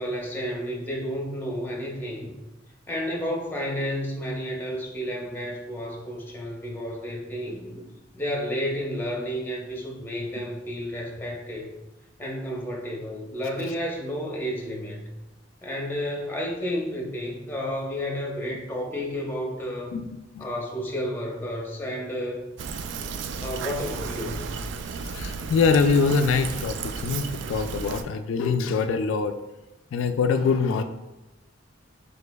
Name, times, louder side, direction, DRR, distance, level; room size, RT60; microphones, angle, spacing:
voice 1, 0.0-2.3 2.9-7.8 8.1-11.7 12.2-15.0 15.6-20.0 20.4-22.4 23.4-24.5, equal, 10° left, -2 dB, 0.8 m, -31 dB
Fill (with liquid), 22.6-28.0, right 5 dB, 65° right, 0.3 m, -33 dB
voice 2, 25.1-29.3 29.9-30.8, left 5 dB, 80° left, 8 dB, 0.3 m, -24 dB
5.0 x 4.2 x 2.2 m, 0.98 s
head